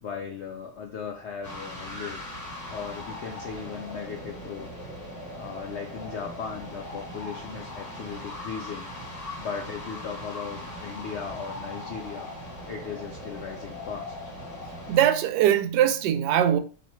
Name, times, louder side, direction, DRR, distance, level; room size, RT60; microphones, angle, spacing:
voice 1, 0.0-2.2 2.7-4.7 5.3-8.9 9.3-14.1, left 6 dB, 75° left, 0.6 m, -37 dB
sound 1, 1.4-15.1, left 1 dB, 25° left, 1.3 m, -39 dB
voice 2, 14.9-16.6, right 10 dB, 90° right, 1.2 m, -21 dB
4.1 x 2.7 x 4.4 m
omnidirectional pair, 1.8 m